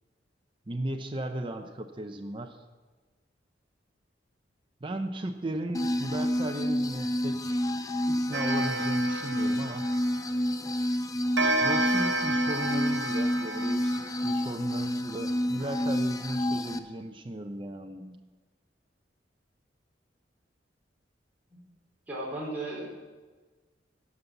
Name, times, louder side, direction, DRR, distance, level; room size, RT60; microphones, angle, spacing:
voice 1, 0.7-2.6 4.8-7.6 8.1-9.8 11.6-18.2, right 1 dB, 30° right, 4 dB, 0.6 m, -36 dB
sound 1, 5.7-16.8, equal, 20° left, 0.5 m, -29 dB
Clock, 8.3-10.6 11.4-14.8, right 2 dB, 85° right, 1.4 m, -31 dB
voice 2, 22.1-22.8, right 2 dB, 10° right, -6 dB, 3.4 m, -35 dB
13.0 x 5.5 x 8.1 m, 1.3 s
head